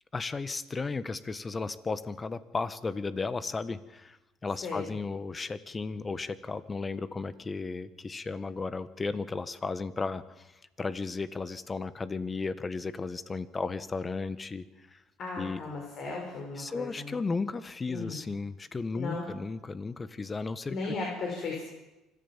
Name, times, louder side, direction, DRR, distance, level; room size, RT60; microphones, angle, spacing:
voice 1, 0.1-10.5 10.8-15.0 15.4-15.6 16.6-20.9, left 4 dB, 25° left, 14 dB, 1.5 m, -34 dB
voice 2, 15.2-17.2 17.9-18.2 18.9-19.3 20.7-21.6, left 3 dB, 55° left, 0 dB, 5.6 m, -36 dB
25.0 x 14.5 x 7.5 m, 1.0 s
hypercardioid pair, 70°, 0 cm